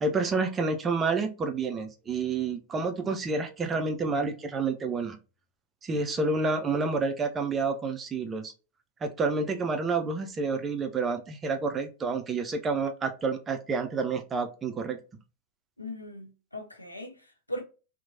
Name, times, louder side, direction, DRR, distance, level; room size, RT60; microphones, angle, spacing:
voice 1, 0.0-5.2 5.8-8.5 9.0-15.0, right 4 dB, 20° right, 0.4 m, -29 dB
voice 2, 15.8-17.6, equal, 85° left, 0.6 m, -39 dB
2.9 x 2.1 x 2.5 m
figure-of-eight pair, 90°, 0 cm